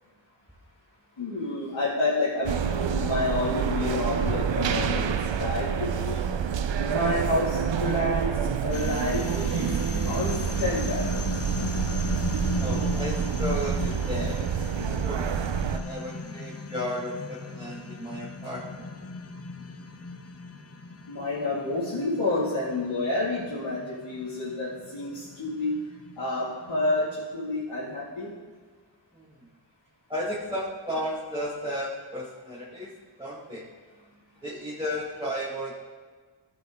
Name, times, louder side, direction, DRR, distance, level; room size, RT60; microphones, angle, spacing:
voice 1, 1.2-6.2 6.9-8.3 8.6-9.7 10.0-11.3 21.1-25.8 26.2-28.3, left 2 dB, 85° left, -9 dB, 2.3 m, -29 dB
sound 1, 2.5-15.8, right 7 dB, 75° right, 0.7 m, -28 dB
sound 2, 8.7-27.2, left 3 dB, 30° left, 0.8 m, -37 dB
voice 2, 12.6-14.4 15.0-15.3 15.7-18.9 29.1-29.3 30.1-32.9 33.2-33.7 34.4-35.7, equal, 10° right, -7 dB, 1.8 m, -34 dB
14.5 x 6.3 x 3.6 m, 1.5 s
wide cardioid pair, 55°, 45 cm